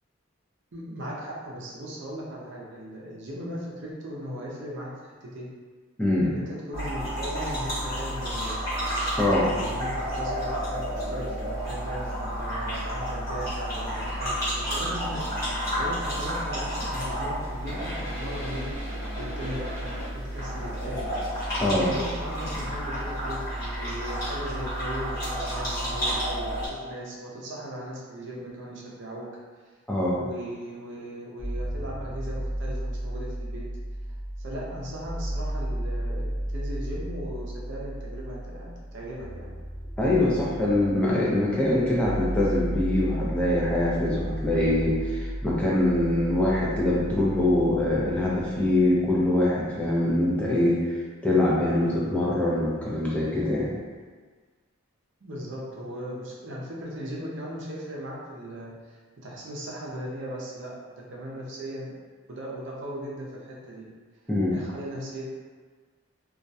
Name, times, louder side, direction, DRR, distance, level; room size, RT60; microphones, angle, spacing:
voice 1, 0.7-5.5 6.2-8.5 9.5-15.2 15.5-18.8 19.2-20.0 20.3-21.1 21.3-29.3 30.2-33.6 34.4-39.5 55.2-59.0 59.2-61.9 62.3-63.9 64.5-65.3, equal, 55° right, -4 dB, 0.5 m, -38 dB
voice 2, 6.0-6.3 9.2-9.5 21.6-21.9 29.9-30.2 40.0-50.9 51.2-53.7 64.3-64.6, left 1 dB, 5° left, -6 dB, 0.4 m, -23 dB
sound 1, 6.7-26.7, equal, 40° left, 1.2 m, -31 dB
sound 2, 31.4-49.3, right 1 dB, 85° left, 0.9 m, -34 dB
2.3 x 2.1 x 2.6 m, 1.5 s
head